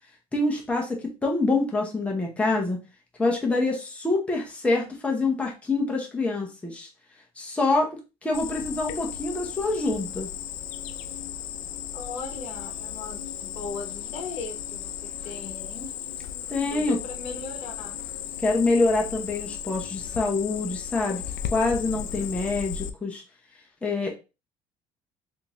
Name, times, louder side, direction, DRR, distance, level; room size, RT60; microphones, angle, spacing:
voice 1, 0.3-2.8 3.2-6.9 7.4-7.9 8.2-10.3 16.5-17.0 18.4-21.2 21.5-23.2 23.8-24.2, left 3 dB, 10° left, -1 dB, 0.8 m, -26 dB
Cricket, 8.3-22.9, left 9 dB, 80° left, 0.5 m, -35 dB
voice 2, 11.9-15.9 16.7-18.0, left 4 dB, 65° left, 4 dB, 1.0 m, -38 dB
3.5 x 2.6 x 2.9 m, 0.30 s
cardioid pair, 120°, 12 cm